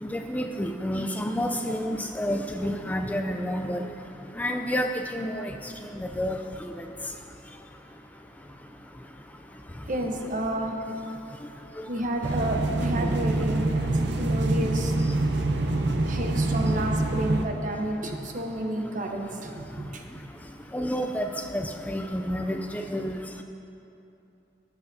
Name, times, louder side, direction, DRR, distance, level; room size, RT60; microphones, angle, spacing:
voice 1, 0.0-3.8 4.4-5.5 6.0-6.4 6.8-6.9 20.7-23.2, equal, 10° left, 5 dB, 0.3 m, -29 dB
voice 2, 9.9-10.8 11.9-14.9 16.0-19.6 19.9-20.0, right 1 dB, 45° right, 3 dB, 0.9 m, -30 dB
sound 1, 12.2-17.4, right 2 dB, 80° right, 0.6 m, -25 dB
17.0 x 7.8 x 2.7 m, 2.8 s
head